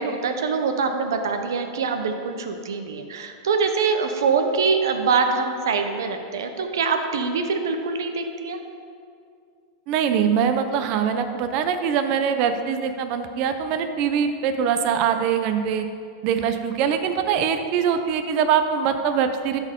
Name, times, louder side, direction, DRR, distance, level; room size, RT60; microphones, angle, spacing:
voice 1, 0.0-8.6, right 5 dB, 90° right, 6 dB, 0.8 m, -24 dB
voice 2, 9.9-15.9 16.2-19.6, right 7 dB, 45° right, 8 dB, 0.6 m, -23 dB
13.0 x 4.4 x 3.7 m, 2.3 s
supercardioid pair, 135°, 2 cm